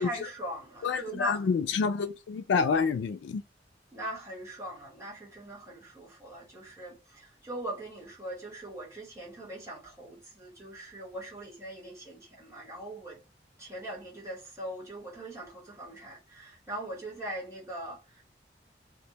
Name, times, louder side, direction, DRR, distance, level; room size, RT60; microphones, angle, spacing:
voice 1, 0.0-1.5 3.9-13.2 13.6-18.3, right 1 dB, 15° right, 1.0 m, -41 dB
voice 2, 0.8-3.4, left 5 dB, 85° left, 0.3 m, -28 dB
2.5 x 2.2 x 2.8 m
head